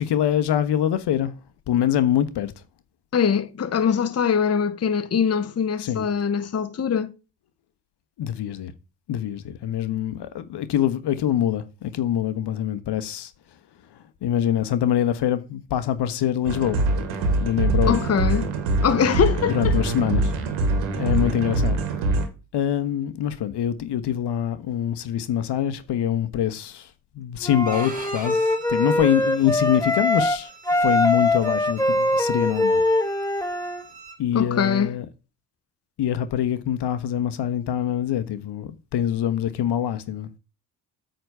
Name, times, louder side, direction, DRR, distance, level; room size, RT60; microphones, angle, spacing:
voice 1, 0.0-1.3 1.7-2.5 5.8-6.1 8.2-8.7 9.1-13.3 13.9-16.8 17.4-18.0 19.5-20.3 21.0-21.8 22.5-30.5 30.8-32.8 34.2-35.1 36.0-40.3, left 10 dB, 55° left, 1.2 m, -24 dB
voice 2, 3.1-7.1 17.9-18.5 18.8-19.7 34.3-34.9, left 7 dB, 30° left, 1.0 m, -22 dB
sound 1, 16.5-22.3, right 2 dB, 75° right, 1.9 m, -23 dB
Wind instrument woodwind instrument, 27.4-30.4 30.7-33.8, left 1 dB, 5° left, 1.4 m, -22 dB
Bowed string instrument, 27.7-34.2, right 2 dB, 15° right, 3.7 m, -42 dB
8.9 x 3.9 x 6.8 m
hypercardioid pair, 55°, 48 cm